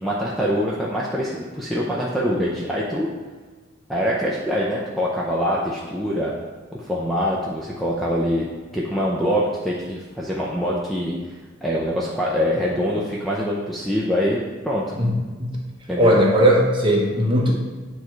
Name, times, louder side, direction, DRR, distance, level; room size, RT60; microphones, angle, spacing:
voice 1, 0.0-3.1 3.9-6.3 6.7-8.5 8.7-11.1 11.6-15.0 15.9-16.1, equal, ahead, -5 dB, 0.5 m, -24 dB
voice 2, 16.0-17.5, equal, 25° right, -2 dB, 1.0 m, -17 dB
8.6 x 3.1 x 4.5 m, 1.4 s
head